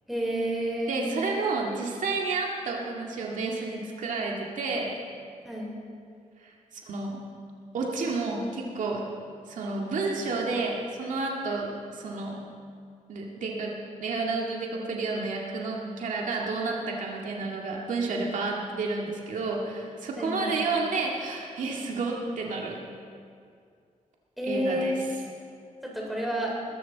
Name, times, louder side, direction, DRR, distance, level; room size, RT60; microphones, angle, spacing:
voice 1, 0.1-1.1 5.4-5.7 20.1-20.5 24.4-24.9 25.8-26.5, equal, ahead, -4 dB, 4.1 m, -30 dB
voice 2, 0.9-4.9 6.4-6.5 6.9-7.2 7.7-9.0 9.5-12.5 13.1-22.8 24.4-25.0, right 3 dB, 75° right, -2 dB, 2.0 m, -30 dB
21.0 x 13.5 x 4.1 m, 2.3 s
wide cardioid pair, 130°, 13 cm